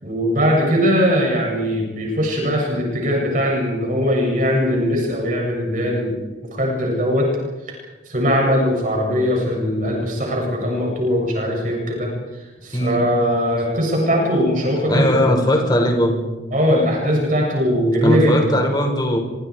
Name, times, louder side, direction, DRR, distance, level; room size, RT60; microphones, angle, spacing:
voice 1, 0.0-6.2 6.5-7.3 7.7-7.8 8.1-12.1 12.4-15.3 16.5-18.4, equal, 45° right, -1 dB, 7.5 m, -20 dB
voice 2, 12.7-13.1 14.9-16.2 18.0-19.2, equal, 25° left, 2 dB, 5.9 m, -19 dB
27.0 x 26.5 x 4.9 m, 1.2 s
head